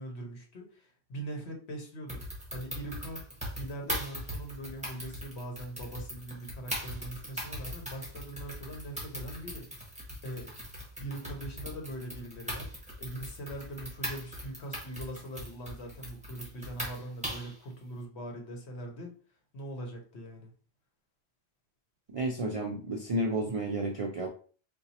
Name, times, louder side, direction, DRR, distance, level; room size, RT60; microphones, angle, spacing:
voice 1, 0.0-2.2 2.5-3.2 3.5-9.6 10.2-10.5 11.0-12.7 13.0-19.1 19.5-20.5, right 1 dB, 85° left, 2 dB, 1.2 m, -41 dB
sound 1, 2.1-17.6, equal, 5° right, 1.1 m, -40 dB
voice 2, 22.1-24.3, right 1 dB, 65° right, 1 dB, 0.3 m, -31 dB
3.9 x 2.6 x 2.8 m, 0.43 s
omnidirectional pair, 1.1 m